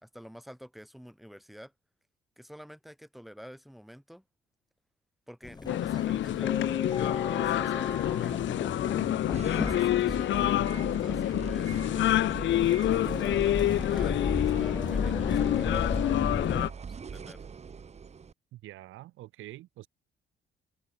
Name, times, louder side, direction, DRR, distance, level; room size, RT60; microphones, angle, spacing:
voice 1, 0.0-1.7 2.4-4.2 5.3-6.6 6.9-8.5 9.4-12.2 12.9-17.6, equal, ahead, 3.4 m, -48 dB
sound 1, 5.4-16.7, left 4 dB, 20° left, 0.8 m, -35 dB
sound 2, 5.7-16.7, left 13 dB, 70° left, 0.7 m, -27 dB
sound 3, 9.3-18.3, right 6 dB, 35° right, 1.0 m, -41 dB
voice 2, 18.5-19.9, right 16 dB, 85° right, 1.2 m, -46 dB
cardioid pair, 90°, 20 cm